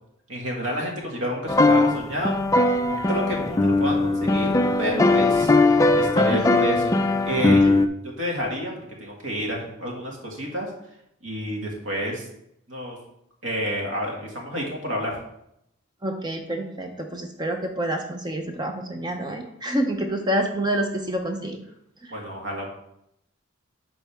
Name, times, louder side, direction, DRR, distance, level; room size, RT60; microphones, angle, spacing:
voice 1, 0.3-2.3 2.8-4.5 4.8-7.0 7.2-7.7 8.0-8.7 9.0-10.7 11.2-12.2 12.7-13.0 13.4-15.2 22.1-22.7, equal, 70° right, -1 dB, 2.0 m, -29 dB
sound 1, 1.5-7.9, left 2 dB, 15° left, 0.3 m, -20 dB
voice 2, 16.0-21.6 22.0-22.1, right 1 dB, 20° right, 4 dB, 0.6 m, -28 dB
11.5 x 4.0 x 3.5 m, 0.77 s
head